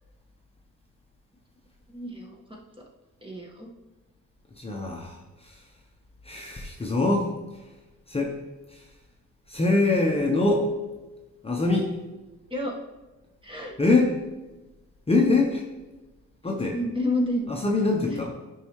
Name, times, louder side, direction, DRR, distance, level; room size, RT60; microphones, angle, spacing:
voice 1, 1.9-2.6 3.2-3.7 12.5-12.7 13.4-13.7 16.7-17.5 18.1-18.2, left 1 dB, 15° right, -1 dB, 1.5 m, -30 dB
voice 2, 4.5-5.7 6.2-7.7 8.1-8.4 8.7-9.0 9.5-10.7 11.4-12.0 13.8-14.1 15.1-15.6 16.4-16.8 17.5-18.3, left 3 dB, 20° left, 0 dB, 0.9 m, -24 dB
9.2 x 5.5 x 3.1 m, 1.1 s
cardioid pair, 90°, 30 cm